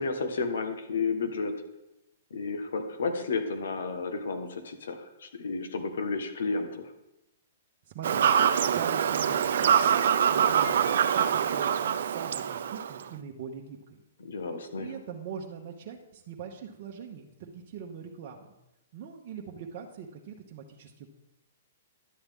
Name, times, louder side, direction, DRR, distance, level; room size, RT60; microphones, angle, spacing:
voice 1, 0.0-1.5 2.3-6.9 14.2-14.9, left 4 dB, 80° left, 7 dB, 1.4 m, -32 dB
voice 2, 7.9-8.3 8.6-9.9 10.3-14.0 14.8-18.5 18.9-21.1, right 7 dB, 45° right, 0 dB, 1.0 m, -42 dB
Fowl / Bird vocalization bird call bird song, 8.0-13.0, right 8 dB, 70° right, 0.5 m, -24 dB
11.0 x 7.8 x 3.6 m, 0.91 s
hypercardioid pair, 140°, 0 cm